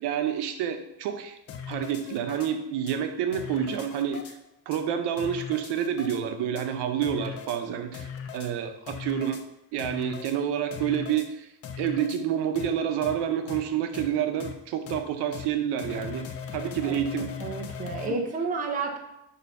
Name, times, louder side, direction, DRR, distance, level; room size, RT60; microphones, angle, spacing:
voice 1, 0.0-1.4 1.7-4.4 4.7-9.5 9.7-11.5 11.8-17.3 18.0-18.2, right 9 dB, 90° right, 7 dB, 0.8 m, -29 dB
sound 1, 1.5-2.5 2.9-3.0 3.3-4.3 4.7-4.8 5.2-6.2 6.5-6.7 7.0-7.6 7.9-8.5 8.9-9.4 9.8-10.3 10.7-11.3 11.6-12.2 12.5-12.7 13.0-13.1 13.5-13.6 13.9-14.1 14.4-14.5 14.9-15.0 15.3-15.5 15.8-18.1, left 7 dB, 40° left, 0.5 m, -38 dB
voice 2, 17.4-19.0, right 4 dB, 20° right, 0 dB, 0.7 m, -31 dB
6.6 x 2.7 x 5.4 m, 0.85 s
cardioid pair, 175°, 39 cm